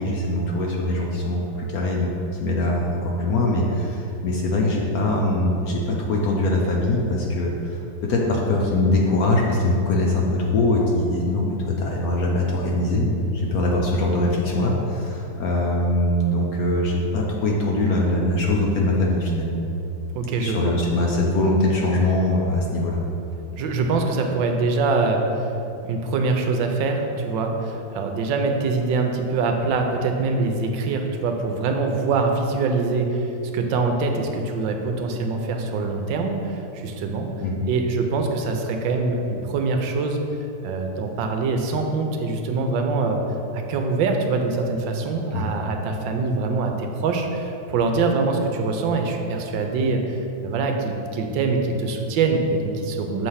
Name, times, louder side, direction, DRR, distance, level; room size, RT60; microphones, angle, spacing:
voice 1, 0.0-19.6 20.4-23.0 37.4-37.7 45.3-45.5, left 1 dB, 65° left, -1 dB, 1.0 m, -22 dB
voice 2, 20.1-20.7 23.5-25.2 25.8-33.3 33.5-37.3 37.7-40.2 40.6-43.2 43.5-50.2 50.4-53.3, right 3 dB, 80° right, 3 dB, 1.3 m, -24 dB
7.2 x 3.3 x 5.5 m, 2.8 s
omnidirectional pair, 2.0 m